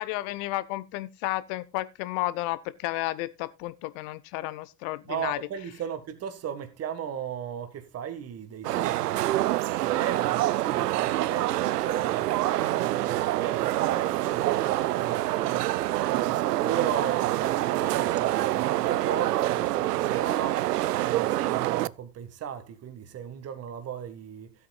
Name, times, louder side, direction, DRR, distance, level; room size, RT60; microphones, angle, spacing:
voice 1, 0.0-5.4, left 17 dB, 50° left, 1.0 m, -32 dB
voice 2, 5.1-9.2 9.8-15.7 16.1-20.7 21.0-24.5, right 8 dB, 30° right, 1.8 m, -36 dB
sound 1, 8.6-21.9, right 15 dB, 80° right, 0.5 m, -26 dB
16.0 x 8.7 x 2.4 m
hypercardioid pair, 85°, 46 cm